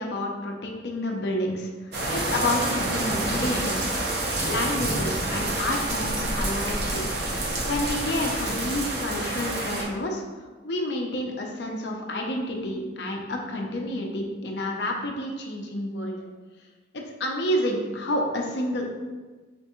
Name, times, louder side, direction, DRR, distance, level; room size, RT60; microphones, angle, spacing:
voice 1, 0.0-1.7 2.1-3.9 4.4-7.1 7.7-10.2 10.6-16.2 16.9-18.8, left 1 dB, 70° left, 1 dB, 0.6 m, -29 dB
sound 1, 1.9-9.8, right 2 dB, 65° right, 0.8 m, -28 dB
4.3 x 3.3 x 3.0 m, 1.3 s
head